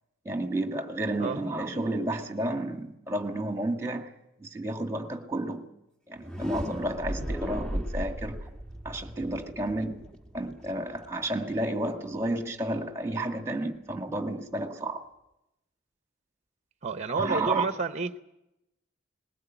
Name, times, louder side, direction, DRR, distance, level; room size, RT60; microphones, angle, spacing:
voice 1, 0.3-4.1 4.4-5.7 6.1-8.4 8.9-10.0 10.3-15.1 17.1-17.6, right 1 dB, 15° right, 1.9 m, -31 dB
sound 1, 6.1-12.0, equal, 5° left, 1.3 m, -36 dB
voice 2, 16.8-18.2, right 4 dB, 35° right, 0.8 m, -30 dB
20.5 x 17.0 x 9.1 m
head